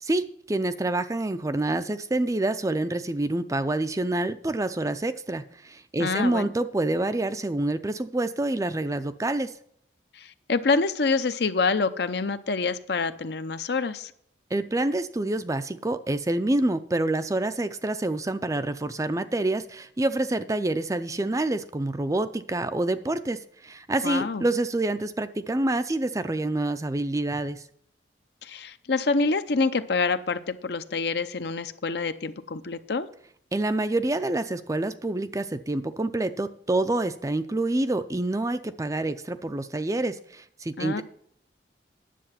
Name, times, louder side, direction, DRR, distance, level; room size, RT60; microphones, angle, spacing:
voice 1, 0.0-9.5 14.5-23.4 23.6-27.6 33.5-41.0, right 2 dB, 20° right, 11 dB, 0.4 m, -27 dB
voice 2, 6.0-6.5 10.2-14.1 24.0-24.5 28.4-33.1 40.8-41.0, left 4 dB, 60° left, 11 dB, 0.7 m, -26 dB
10.0 x 7.6 x 5.8 m, 0.66 s
head